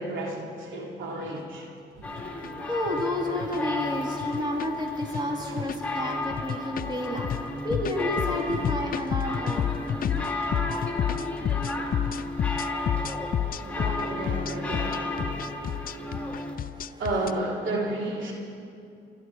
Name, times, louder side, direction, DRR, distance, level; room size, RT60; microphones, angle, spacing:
voice 1, 0.0-1.7 5.4-5.6 6.8-7.1 13.7-15.2 17.0-18.3, right 2 dB, 70° right, -2 dB, 3.1 m, -32 dB
sound 1, 1.3-1.4 2.1-2.5 2.9-3.0 3.4-3.6 4.2-4.7 5.0-5.2 5.6-5.9 6.3-17.3, left 10 dB, 45° left, 0.4 m, -30 dB
sound 2, 1.9-3.2 4.0-6.4 7.8-7.9 8.3-10.5, right 2 dB, 90° right, 2.6 m, -48 dB
sound 3, 2.0-16.5, left 2 dB, 5° left, 2.9 m, -33 dB
voice 2, 2.7-9.7 10.0-10.3 10.6-10.8 11.4-11.6 16.8-17.0, left 1 dB, 20° right, 0 dB, 3.0 m, -31 dB
25.0 x 12.0 x 4.8 m, 2.4 s
cardioid pair, 90°, 20 cm